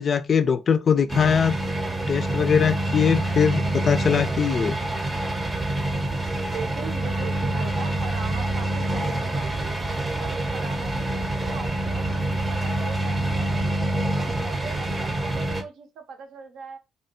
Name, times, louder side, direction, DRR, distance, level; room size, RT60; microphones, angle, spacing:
voice 1, 0.0-1.6 2.1-4.8, left 7 dB, 45° left, 0.3 m, -21 dB
sound 1, 1.1-15.6, right 1 dB, 20° right, 0.7 m, -26 dB
voice 2, 6.5-9.8 10.2-12.1 12.5-13.7 14.1-16.8, right 6 dB, 80° right, 0.6 m, -40 dB
2.6 x 2.2 x 2.8 m
cardioid pair, 90°, 0 cm